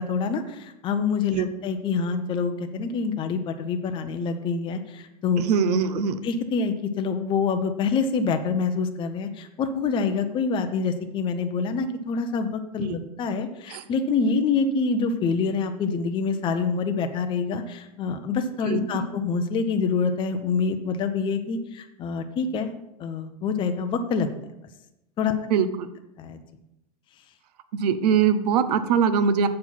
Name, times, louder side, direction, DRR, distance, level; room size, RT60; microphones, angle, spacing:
voice 1, 0.0-5.4 6.2-24.3 25.2-25.3 26.2-26.4, left 5 dB, 25° left, 7 dB, 0.6 m, -26 dB
voice 2, 5.4-6.2 12.8-13.0 13.7-13.8 18.7-18.9 25.5-25.9 27.7-29.5, right 7 dB, 75° right, 11 dB, 0.7 m, -22 dB
7.4 x 4.5 x 5.7 m, 0.87 s
supercardioid pair, 140°, 21 cm